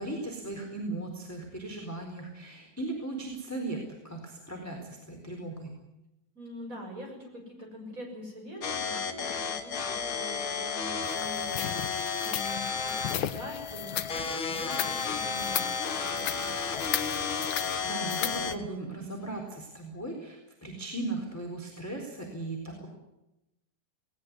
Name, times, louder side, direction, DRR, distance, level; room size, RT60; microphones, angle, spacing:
voice 1, 0.0-3.8 4.0-5.7 17.4-22.9, right 2 dB, 5° left, 2 dB, 3.6 m, -37 dB
voice 2, 6.3-14.3 14.6-15.7 16.1-16.5, left 1 dB, 20° right, 1 dB, 6.7 m, -44 dB
sound 1, 8.6-18.6, left 5 dB, 45° left, 1.8 m, -32 dB
sound 2, 11.0-18.6, left 12 dB, 70° left, 2.8 m, -37 dB
19.5 x 19.5 x 9.7 m, 0.92 s
omnidirectional pair, 4.6 m